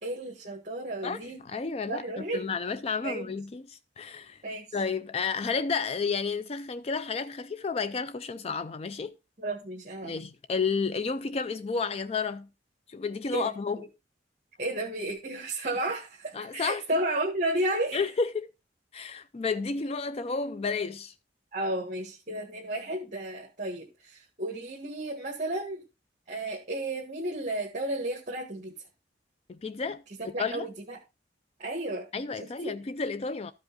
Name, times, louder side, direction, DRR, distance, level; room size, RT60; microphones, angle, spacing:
voice 1, 0.0-1.4 1.9-2.5 3.0-3.3 4.4-4.8 9.4-10.2 13.3-13.9 14.6-18.0 21.5-25.8 26.3-28.8 30.2-31.0 31.6-32.1 32.4-32.7, right 1 dB, 40° right, 1.5 m, -33 dB
voice 2, 1.4-2.0 2.3-4.4 4.7-9.2 10.0-12.5 12.9-13.8 16.3-16.8 17.9-18.5 18.9-21.1 29.5-30.0 30.4-30.7 32.1-33.5, left 5 dB, 35° left, 0.4 m, -31 dB
13.0 x 5.3 x 3.7 m
head